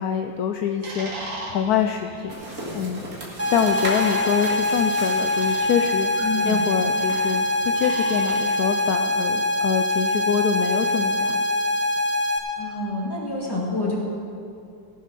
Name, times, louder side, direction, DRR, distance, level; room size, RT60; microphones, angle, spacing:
voice 1, 0.0-3.1 3.5-11.4, left 8 dB, 75° left, 6 dB, 0.9 m, -25 dB
sound 1, 0.8-8.4, right 1 dB, 80° right, 2.9 m, -39 dB
sound 2, 2.3-7.3, right 1 dB, 50° right, 2.7 m, -36 dB
sound 3, 3.4-12.4, left 1 dB, 10° right, 0.9 m, -23 dB
voice 2, 6.2-6.6 12.6-14.0, left 2 dB, 10° left, -3 dB, 2.2 m, -27 dB
17.5 x 7.4 x 5.9 m, 2.6 s
omnidirectional pair, 2.1 m